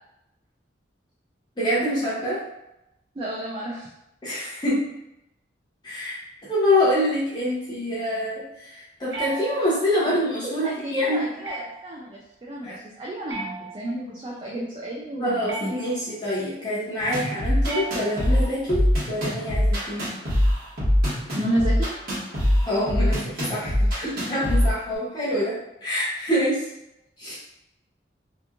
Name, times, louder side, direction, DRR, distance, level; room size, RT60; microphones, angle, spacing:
voice 1, 1.6-2.4 4.2-4.9 5.8-6.2 6.4-11.2 12.6-12.8 15.2-20.1 22.7-26.6 27.2-27.4, left 1 dB, 25° left, -9 dB, 0.6 m, -26 dB
voice 2, 3.2-3.9 10.4-15.7 17.2-17.3 21.3-21.9, right 1 dB, 25° right, -4 dB, 0.3 m, -31 dB
sound 1, 9.1-10.0 11.4-12.0 13.3-14.2 15.5-16.2 17.6-18.5, right 3 dB, 75° right, 0.7 m, -36 dB
sound 2, 17.0-25.0, equal, 50° right, 1.2 m, -23 dB
2.9 x 2.4 x 2.3 m, 0.86 s
head